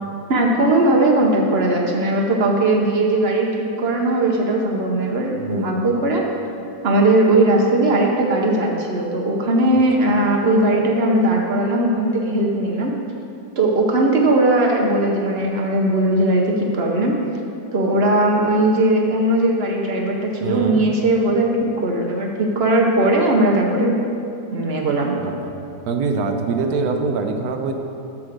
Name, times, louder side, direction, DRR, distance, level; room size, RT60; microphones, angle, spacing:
voice 1, 0.3-3.5 3.8-6.2 6.8-12.9 13.6-17.2 17.7-21.5 21.8-24.0 24.5-25.1, right 1 dB, 50° right, 0 dB, 0.8 m, -18 dB
voice 2, 20.4-20.9 25.2-25.5 25.9-27.7, right 4 dB, 70° right, 4 dB, 1.1 m, -24 dB
7.1 x 4.8 x 6.4 m, 2.6 s
omnidirectional pair, 1.7 m